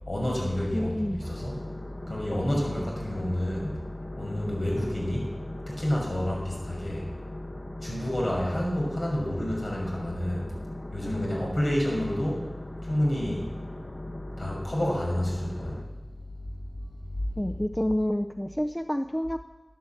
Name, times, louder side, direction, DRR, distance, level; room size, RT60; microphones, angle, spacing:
voice 1, 0.0-1.6 2.1-3.8 4.2-5.3 5.7-7.1 7.8-17.5, left 1 dB, 60° left, -3 dB, 5.8 m, -30 dB
voice 2, 0.7-1.2 17.4-19.4, equal, 15° left, 7 dB, 0.5 m, -28 dB
sound 1, 1.2-15.8, left 1 dB, 40° left, 1.1 m, -40 dB
12.0 x 9.7 x 7.6 m, 1.1 s
wide cardioid pair, 45°, 0 cm